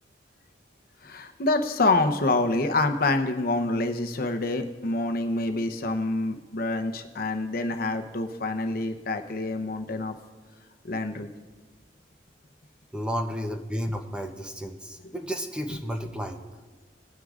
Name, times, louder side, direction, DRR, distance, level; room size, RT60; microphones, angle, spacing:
voice 1, 1.0-10.1 10.9-11.3, left 2 dB, 55° left, 6 dB, 0.8 m, -26 dB
voice 2, 12.9-16.5, equal, 5° right, 3 dB, 0.7 m, -32 dB
20.0 x 9.6 x 2.5 m, 1.3 s
head